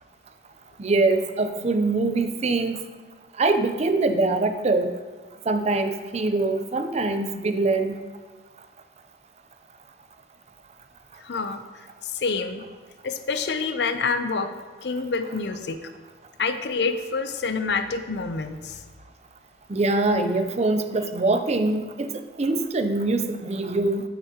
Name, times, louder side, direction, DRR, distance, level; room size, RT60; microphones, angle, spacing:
voice 1, 0.8-2.8 3.4-4.9 5.5-8.0 19.7-22.1 22.4-24.0, right 2 dB, 40° right, 8 dB, 0.5 m, -23 dB
voice 2, 11.2-12.7 13.0-14.5 14.8-15.9 16.4-18.8, left 4 dB, 70° left, 9 dB, 0.6 m, -27 dB
8.6 x 8.4 x 2.9 m, 1.4 s
head